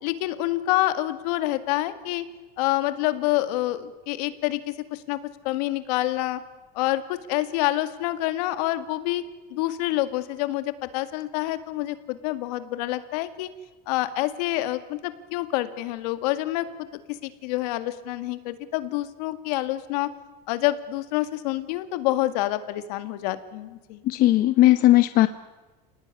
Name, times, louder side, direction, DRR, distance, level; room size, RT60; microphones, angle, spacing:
voice 1, 0.0-2.3 2.6-6.4 6.8-9.2 9.5-13.5 13.9-16.7 17.1-20.1 20.5-24.0, left 16 dB, 75° left, 11 dB, 2.1 m, -27 dB
voice 2, 24.0-25.3, left 15 dB, 45° left, 11 dB, 1.0 m, -17 dB
29.0 x 19.0 x 9.8 m, 1.2 s
supercardioid pair, 140°, 21 cm